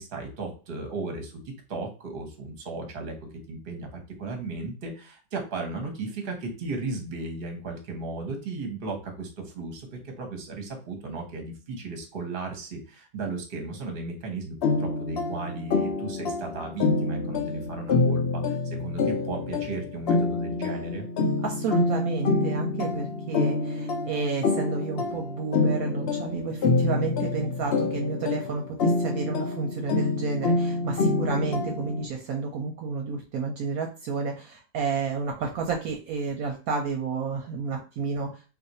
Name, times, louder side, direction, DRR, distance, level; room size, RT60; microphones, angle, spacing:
voice 1, 0.0-1.4 1.7-3.9 4.2-21.1, right 3 dB, 40° right, 3 dB, 0.9 m, -35 dB
sound 1, 14.6-32.1, left 3 dB, 75° left, 0.5 m, -27 dB
voice 2, 21.4-38.4, right 4 dB, 70° right, 2 dB, 1.0 m, -31 dB
2.5 x 2.5 x 4.1 m, 0.35 s
omnidirectional pair, 1.7 m